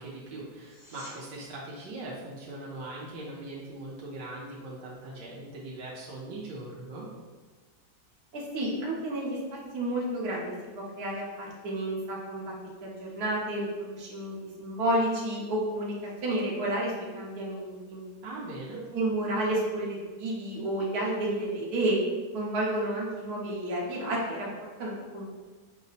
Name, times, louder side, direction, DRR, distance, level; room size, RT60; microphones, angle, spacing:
voice 1, 0.0-7.1 18.2-18.8, right 2 dB, 85° right, -5 dB, 1.4 m, -40 dB
sound 1, 0.6-1.2 12.5-12.6, left 1 dB, 80° left, 1.8 m, -49 dB
voice 2, 8.3-9.4 9.7-12.5 12.8-15.9 16.2-18.0 18.9-22.0 22.3-24.5 24.8-25.2, right 1 dB, 65° right, -4 dB, 1.4 m, -31 dB
5.4 x 2.1 x 4.0 m, 1.3 s
omnidirectional pair, 1.8 m